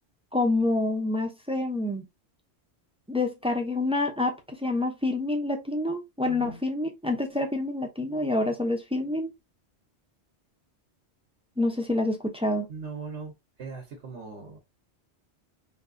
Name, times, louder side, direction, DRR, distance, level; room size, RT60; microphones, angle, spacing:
voice 1, 0.3-2.0 3.1-9.3 11.6-12.7, left 2 dB, 10° right, 0.4 m, -27 dB
voice 2, 6.2-6.6 12.7-13.3 13.6-14.6, right 4 dB, 80° right, 1.2 m, -39 dB
3.7 x 2.7 x 2.6 m
omnidirectional pair, 1.2 m